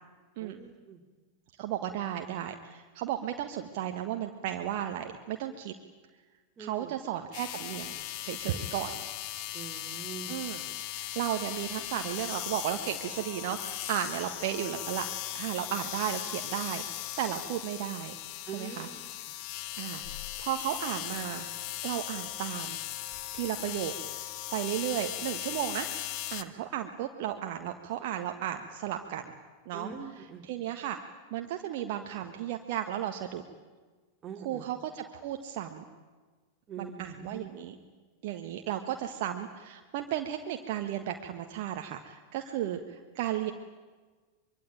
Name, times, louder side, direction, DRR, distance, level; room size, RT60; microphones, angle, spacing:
voice 1, 0.4-1.0 6.6-6.9 9.5-10.4 18.5-19.0 29.7-30.4 34.2-34.6 36.7-37.5, right 5 dB, 25° right, 4 dB, 2.8 m, -43 dB
voice 2, 1.6-5.7 6.6-8.0 8.2-8.9 10.3-15.0 15.3-16.8 17.2-18.1 18.5-18.9 19.8-21.5 21.8-22.8 23.3-23.9 24.5-26.1 26.3-29.3 29.6-31.0 31.3-33.4 34.4-35.8 36.8-37.8 38.2-43.5, right 11 dB, 50° right, 5 dB, 1.5 m, -34 dB
sound 1, 7.3-26.4, left 14 dB, 45° left, 1.2 m, -38 dB
24.5 x 23.5 x 9.2 m, 1.4 s
figure-of-eight pair, 90°, 0 cm